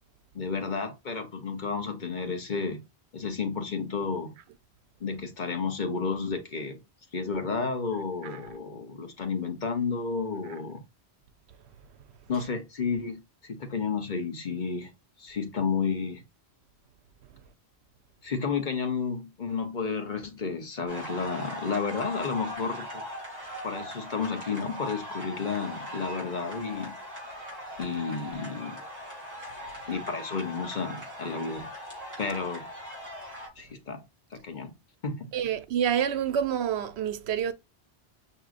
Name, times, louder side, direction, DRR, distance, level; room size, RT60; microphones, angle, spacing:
voice 1, 0.3-2.8 3.1-4.4 5.0-6.8 7.1-10.8 12.3-14.9 15.2-16.2 18.2-23.0 23.6-27.0 27.8-28.8 29.9-31.7 32.2-32.6 33.6-34.0 34.3-34.8 35.0-35.3, left 5 dB, 50° left, 0.9 m, -31 dB
sound 1, 20.9-33.5, equal, 35° right, 2.7 m, -40 dB
voice 2, 35.3-37.5, right 9 dB, 75° right, 0.9 m, -28 dB
6.1 x 2.9 x 2.4 m
omnidirectional pair, 1.1 m